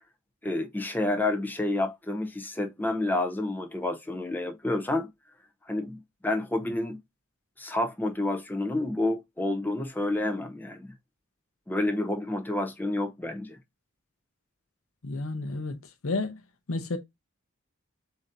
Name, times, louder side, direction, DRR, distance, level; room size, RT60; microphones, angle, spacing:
voice 1, 0.4-5.1 5.7-7.0 7.6-10.9 11.7-13.6, left 2 dB, 10° left, 0.6 m, -29 dB
voice 2, 15.0-16.4 16.7-17.0, left 2 dB, 75° left, 0.7 m, -31 dB
7.0 x 2.8 x 2.6 m
head